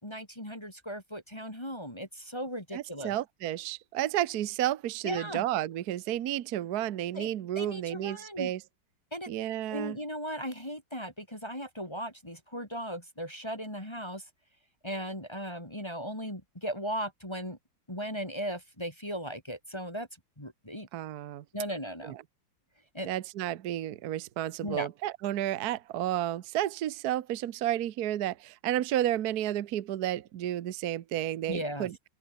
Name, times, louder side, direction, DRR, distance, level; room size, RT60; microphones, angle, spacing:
voice 1, 0.0-3.1 5.0-5.4 7.1-7.3 7.6-8.5 9.1-9.3 9.7-14.3 14.8-17.6 17.9-20.1 20.4-20.9 21.5-22.2 22.9-23.1 24.6-24.9 31.5-31.9, equal, 10° left, 4.1 m, -37 dB
voice 2, 2.7-8.6 9.3-10.0 20.9-21.4 22.0-22.2 23.1-31.9, right 12 dB, 60° right, 1.2 m, -32 dB
open air
omnidirectional pair, 2.2 m